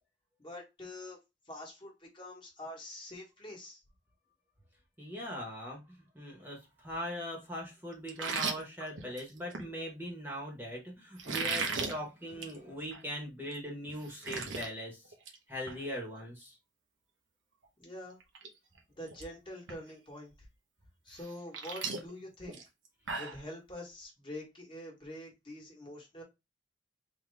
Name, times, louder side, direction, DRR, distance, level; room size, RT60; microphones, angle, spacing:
voice 1, 0.4-1.2 1.5-3.8 17.8-18.2 19.0-20.3 21.0-22.6 23.2-26.2, left 1 dB, 25° left, -1 dB, 1.3 m, -45 dB
voice 2, 5.0-15.0 15.5-16.6, equal, 10° right, -1 dB, 1.0 m, -40 dB
sound 1, 8.1-9.7 11.2-11.9 12.3-12.6 12.9-13.0 13.5-13.6 13.9-14.7 15.0-15.4 15.7-15.8 17.6-17.7 18.2-18.5 18.8-19.2 19.7-19.8 21.1-23.4, right 4 dB, 90° right, 0.9 m, -36 dB
3.7 x 2.8 x 3.3 m, 0.23 s
head